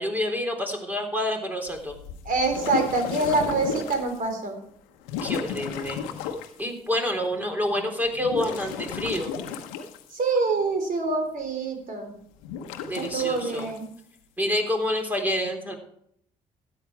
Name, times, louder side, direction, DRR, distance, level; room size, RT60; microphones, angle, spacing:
voice 1, 0.0-1.9 5.2-6.0 6.6-9.3 12.9-13.7 14.4-15.8, left 1 dB, 10° right, 3 dB, 3.7 m, -28 dB
sound 1, 1.7-4.2 5.0-6.6 8.1-10.4 12.4-13.8, left 6 dB, 85° left, 1.1 m, -34 dB
voice 2, 2.3-4.6 10.1-12.1 13.0-13.9, right 3 dB, 55° right, 5 dB, 3.6 m, -26 dB
13.0 x 9.3 x 4.6 m, 0.68 s
hypercardioid pair, 55°, 17 cm